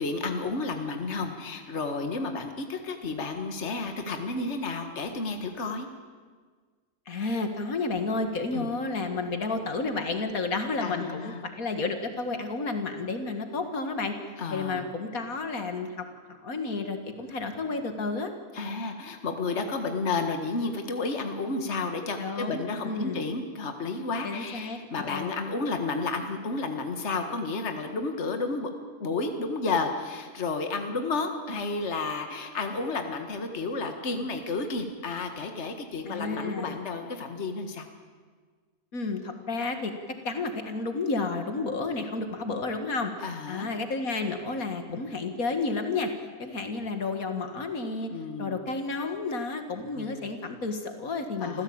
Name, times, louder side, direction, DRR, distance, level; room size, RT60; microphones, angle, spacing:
voice 1, 0.0-5.9 8.5-8.7 10.8-11.4 14.4-14.8 18.5-28.7 29.0-37.9 43.2-43.7 44.9-45.0 48.1-48.6 49.9-50.2 51.4-51.6, left 3 dB, 50° left, 6 dB, 2.0 m, -31 dB
voice 2, 7.1-14.1 14.5-15.9 16.3-18.3 22.2-23.2 24.2-25.4 36.1-36.8 38.9-39.9 40.2-46.1 46.4-48.1 48.4-51.6, left 3 dB, 75° left, 7 dB, 2.3 m, -31 dB
26.5 x 15.5 x 8.7 m, 1.6 s
omnidirectional pair, 1.5 m